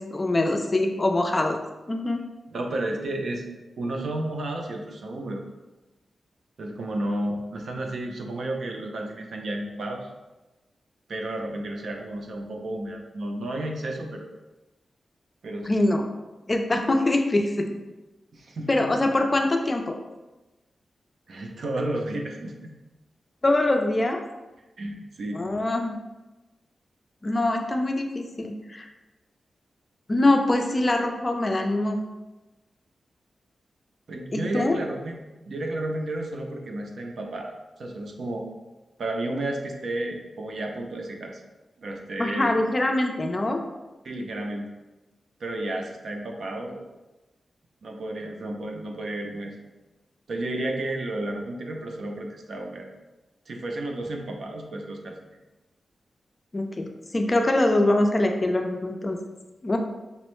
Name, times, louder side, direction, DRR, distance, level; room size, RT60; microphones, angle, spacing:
voice 1, 0.0-1.6 1.9-2.2 15.7-16.1 16.5-17.8 18.7-20.0 23.4-24.2 25.3-26.0 27.2-28.9 30.1-32.0 34.3-34.8 42.2-43.6 56.5-56.9 57.1-59.2 59.6-59.8, left 2 dB, 30° left, 4 dB, 0.4 m, -23 dB
voice 2, 2.5-3.4 3.8-5.4 6.6-10.1 11.1-14.3 15.4-15.8 18.3-19.1 21.3-22.7 24.8-25.4 34.1-35.2 35.5-37.5 37.8-38.5 39.0-41.4 41.8-42.6 44.0-44.7 45.4-46.8 47.8-49.6 50.3-52.9 53.5-55.2, right 1 dB, 70° right, 2 dB, 0.5 m, -32 dB
5.4 x 2.0 x 3.0 m, 1.1 s
wide cardioid pair, 95°, 0 cm